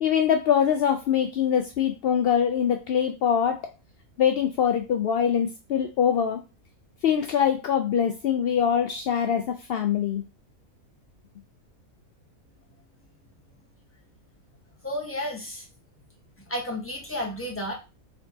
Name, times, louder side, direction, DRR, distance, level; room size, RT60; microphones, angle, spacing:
voice 1, 0.0-3.6 4.2-6.4 7.0-10.2, left 8 dB, 75° left, 5 dB, 0.5 m, -23 dB
voice 2, 14.8-15.7 16.5-17.7, left 1 dB, 10° left, -1 dB, 1.1 m, -32 dB
4.3 x 3.9 x 2.7 m, 0.28 s
omnidirectional pair, 1.5 m